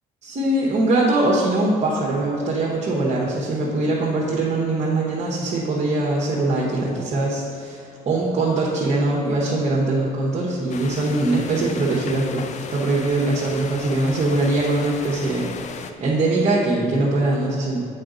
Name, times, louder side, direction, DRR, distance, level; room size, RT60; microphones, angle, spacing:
voice 1, 0.3-17.8, right 2 dB, 40° right, -5 dB, 1.1 m, -22 dB
sound 1, 10.7-15.9, left 6 dB, 45° left, 0.4 m, -36 dB
7.7 x 4.8 x 3.8 m, 2.4 s
cardioid pair, 110°, 17 cm